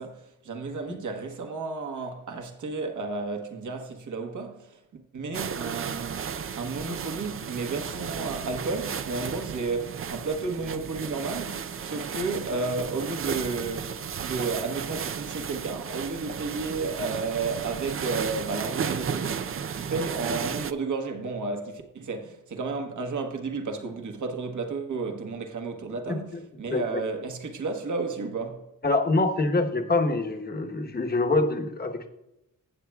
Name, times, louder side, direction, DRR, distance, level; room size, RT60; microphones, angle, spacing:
voice 1, 0.0-28.6, right 3 dB, 60° right, 1.5 m, -32 dB
sound 1, 5.3-20.7, right 7 dB, 40° right, 0.5 m, -34 dB
voice 2, 26.7-27.0 28.8-32.1, left 2 dB, 30° left, 1.2 m, -25 dB
16.0 x 7.4 x 2.4 m
cardioid pair, 80°, 34 cm